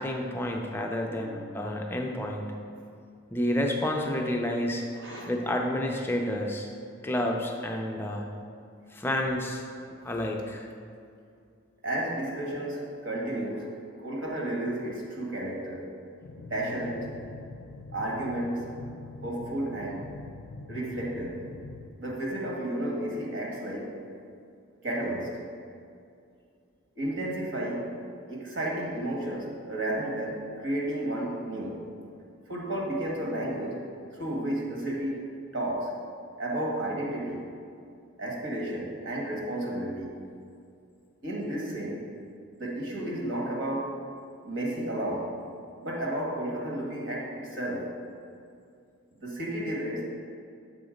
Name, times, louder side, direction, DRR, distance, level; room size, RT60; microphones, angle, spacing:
voice 1, 0.0-2.5 3.3-4.8 5.3-6.7 7.0-8.3 8.9-9.6 10.0-10.7, left 1 dB, 10° left, 1 dB, 0.4 m, -30 dB
voice 2, 4.9-5.3 11.8-13.7 14.0-15.9 16.5-17.1 17.9-18.7 19.2-20.1 20.7-21.4 22.0-24.0 24.8-25.3 27.0-27.9 28.3-31.8 32.5-33.8 34.2-35.2 35.5-35.9 36.4-37.4 38.2-40.2 41.2-42.1 42.6-43.9 44.4-45.3 45.8-47.9 49.2-50.1, right 1 dB, 60° right, -2 dB, 1.4 m, -32 dB
sound 1, 16.2-21.9, left 2 dB, 70° left, 0.4 m, -44 dB
7.0 x 4.0 x 5.0 m, 2.4 s
head